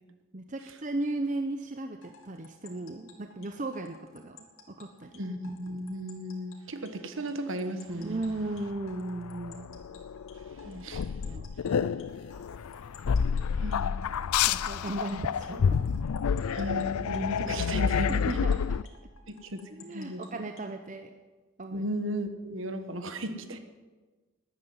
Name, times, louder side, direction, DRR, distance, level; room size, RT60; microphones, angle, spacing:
voice 1, 0.3-4.4 4.7-5.2 8.0-9.7 10.6-11.5 14.5-15.8 18.1-18.6 19.8-21.1 21.6-21.8, right 2 dB, 35° right, 6 dB, 0.7 m, -36 dB
sound 1, 2.0-20.8, left 4 dB, 65° left, 2.4 m, -55 dB
voice 2, 5.2-8.2 10.4-11.1 13.5-14.1 15.0-15.2 16.5-18.4 19.3-20.5 21.7-23.6, equal, 60° right, 9 dB, 1.4 m, -36 dB
sound 2, 8.4-18.8, left 6 dB, 80° left, 0.4 m, -29 dB
13.0 x 11.0 x 9.5 m, 1.3 s
head